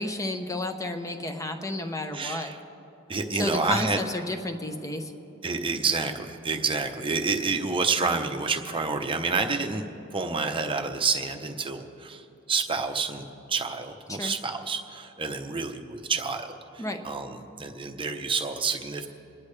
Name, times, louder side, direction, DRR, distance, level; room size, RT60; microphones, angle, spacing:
voice 1, 0.0-2.5 3.4-5.1 14.1-14.3 16.8-17.0, left 2 dB, 15° left, 6 dB, 0.8 m, -31 dB
voice 2, 2.1-2.6 3.1-4.0 5.4-9.8 10.1-19.1, right 4 dB, 25° right, 5 dB, 0.8 m, -29 dB
28.5 x 10.5 x 3.3 m, 2.9 s
head